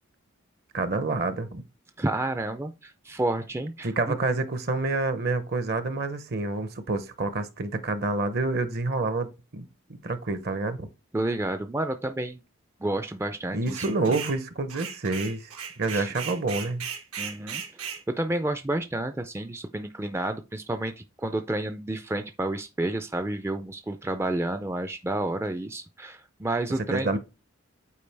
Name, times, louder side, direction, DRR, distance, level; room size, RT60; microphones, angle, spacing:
voice 1, 0.7-1.6 3.8-9.7 10.0-10.9 13.5-15.5 15.8-16.9 26.9-27.2, right 3 dB, 45° right, 0.7 m, -28 dB
voice 2, 2.0-4.2 11.1-12.4 12.8-13.8 15.9-16.1 17.2-27.1, right 1 dB, 10° right, 0.3 m, -30 dB
sound 1, 13.7-14.4 14.7-18.0, right 7 dB, 85° right, 1.4 m, -36 dB
8.4 x 4.5 x 3.4 m
head